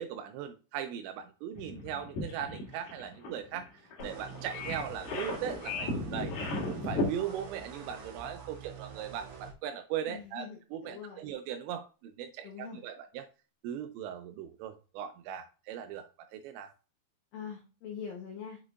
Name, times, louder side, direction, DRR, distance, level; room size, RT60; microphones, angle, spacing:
voice 1, 0.0-3.7 4.0-6.3 6.7-13.3 13.6-16.7, right 9 dB, 85° right, 8 dB, 2.6 m, -39 dB
sound 1, 1.5-7.1, left 2 dB, 60° left, 2.3 m, -35 dB
sound 2, 4.0-9.5, right 6 dB, 60° right, 2.9 m, -46 dB
voice 2, 10.1-11.2 12.4-12.8 17.3-18.6, left 6 dB, 85° left, 0 dB, 1.9 m, -43 dB
6.5 x 6.1 x 2.4 m, 0.34 s
omnidirectional pair, 5.5 m